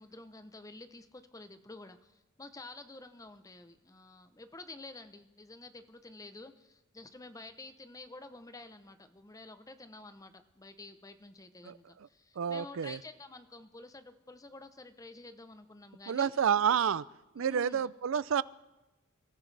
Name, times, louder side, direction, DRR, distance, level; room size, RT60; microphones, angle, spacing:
voice 1, 0.0-16.3 16.8-16.9 17.4-17.9, left 2 dB, 15° left, 10 dB, 0.7 m, -50 dB
voice 2, 12.4-13.0 16.1-17.0 17.3-18.4, right 7 dB, 65° right, 19 dB, 0.4 m, -29 dB
29.0 x 14.0 x 3.3 m, 1.1 s
head